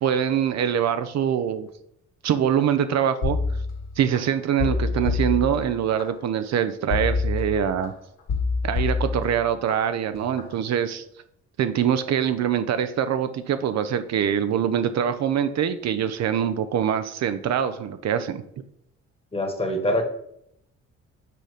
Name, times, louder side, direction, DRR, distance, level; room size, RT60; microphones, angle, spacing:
voice 1, 0.0-1.7 2.2-3.4 4.0-7.9 8.6-11.0 11.6-18.4, right 9 dB, 60° right, 10 dB, 0.6 m, -24 dB
sound 1, 3.2-4.2 4.6-6.0 6.9-7.9 8.3-9.7 10.1-10.5, left 4 dB, 80° left, 1.9 m, -27 dB
voice 2, 4.6-5.1 19.3-20.0, equal, 20° left, 5 dB, 1.3 m, -26 dB
6.7 x 3.8 x 5.0 m, 0.73 s
cardioid pair, 90°, 30 cm